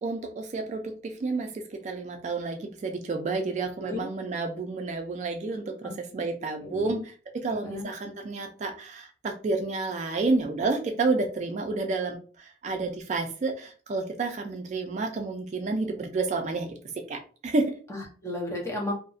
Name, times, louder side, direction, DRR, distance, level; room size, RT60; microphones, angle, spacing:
voice 1, 0.0-16.8 17.1-17.7, right 3 dB, 40° right, 4 dB, 0.3 m, -30 dB
voice 2, 3.8-4.1 5.8-5.9 6.6-7.0 7.6-7.9 17.9-18.9, left 2 dB, 15° left, -1 dB, 0.6 m, -34 dB
2.6 x 2.0 x 2.3 m, 0.39 s
head